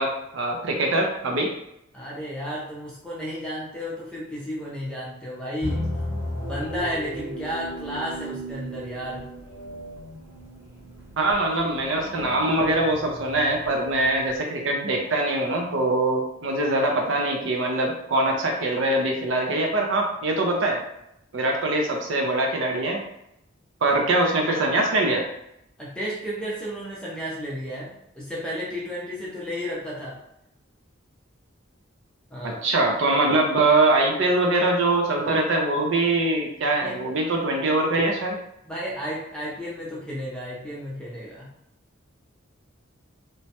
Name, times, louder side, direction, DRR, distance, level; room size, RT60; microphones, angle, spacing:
voice 1, 0.0-1.5 11.2-20.8 21.3-23.0 23.8-25.2 32.4-38.4, right 2 dB, 60° right, 1 dB, 0.5 m, -23 dB
voice 2, 1.9-5.8 6.4-9.3 25.8-30.2 32.3-32.6 36.8-37.0 38.7-41.5, equal, 5° left, -6 dB, 0.5 m, -33 dB
sound 1, 5.6-14.4, equal, 15° right, 0.9 m, -35 dB
3.0 x 2.2 x 2.8 m, 0.81 s
head